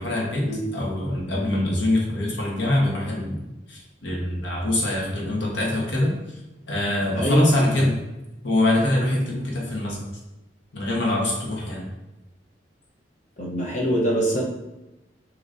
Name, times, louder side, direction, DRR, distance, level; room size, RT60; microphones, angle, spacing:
voice 1, 0.0-3.4 3.7-6.1 6.7-8.0 8.4-10.0 10.7-11.9, left 1 dB, 80° left, -3 dB, 1.3 m, -24 dB
voice 2, 13.4-14.4, right 1 dB, 45° left, -4 dB, 0.9 m, -24 dB
6.3 x 3.0 x 2.7 m, 0.98 s
head